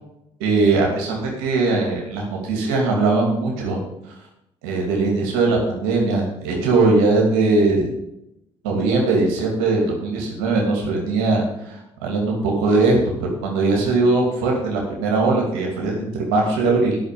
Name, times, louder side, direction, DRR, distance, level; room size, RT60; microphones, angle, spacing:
voice 1, 0.4-3.8 4.6-7.9 8.6-17.0, right 3 dB, 85° right, 0 dB, 2.7 m, -20 dB
10.0 x 6.2 x 8.5 m, 0.86 s
hypercardioid pair, 55°, 12 cm